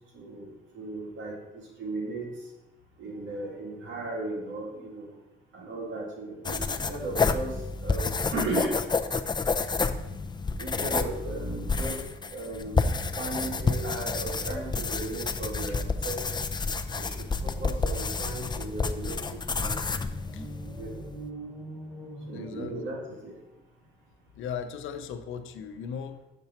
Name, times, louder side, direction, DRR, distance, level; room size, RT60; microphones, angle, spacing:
voice 1, 0.1-0.5 0.7-2.3 3.0-5.1 5.5-7.5 7.8-8.7 10.6-12.0 12.3-16.3 16.9-19.8 20.7-21.0 22.3-23.3, right 2 dB, 70° right, -1 dB, 2.4 m, -36 dB
sound 1, 6.4-21.3, left 4 dB, 20° left, 0.5 m, -30 dB
sound 2, 18.3-23.0, right 1 dB, 5° right, 1.4 m, -44 dB
voice 2, 22.3-22.8 24.4-26.2, left 7 dB, 80° left, 9 dB, 0.8 m, -37 dB
6.9 x 6.8 x 4.4 m, 1.0 s
cardioid pair, 90°, 20 cm